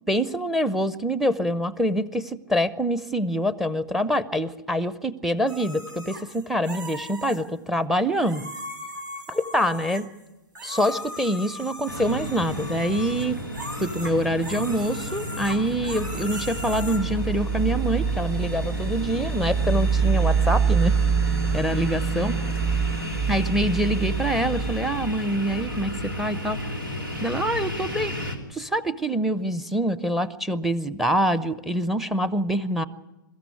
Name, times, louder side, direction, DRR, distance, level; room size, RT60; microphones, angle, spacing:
voice 1, 0.1-8.5 9.3-10.0 10.6-13.4 13.8-20.9 21.5-22.4 23.3-26.6 27.2-28.1 28.5-32.8, equal, ahead, 16 dB, 0.7 m, -25 dB
sound 1, 5.5-7.4 8.2-10.2 10.5-17.0, equal, 70° right, 4.3 m, -38 dB
sound 2, 11.9-28.4, left 1 dB, 90° right, 3.1 m, -33 dB
sound 3, 15.7-26.2, right 6 dB, 35° right, 2.7 m, -26 dB
23.0 x 14.0 x 9.5 m, 1.1 s
figure-of-eight pair, 110°, 11 cm